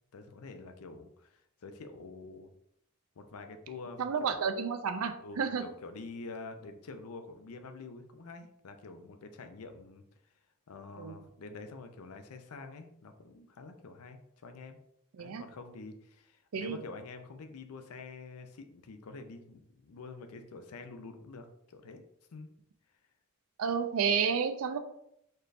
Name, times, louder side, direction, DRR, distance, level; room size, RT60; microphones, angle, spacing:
voice 1, 0.1-2.5 3.2-4.4 5.2-10.0 10.7-14.8 15.2-22.0 22.3-22.5, left 3 dB, 80° left, 7 dB, 0.5 m, -47 dB
voice 2, 4.0-5.6 11.0-11.2 15.2-15.4 16.5-16.8 23.6-24.8, right 6 dB, 70° right, 9 dB, 0.4 m, -31 dB
4.3 x 3.3 x 2.5 m, 0.77 s
head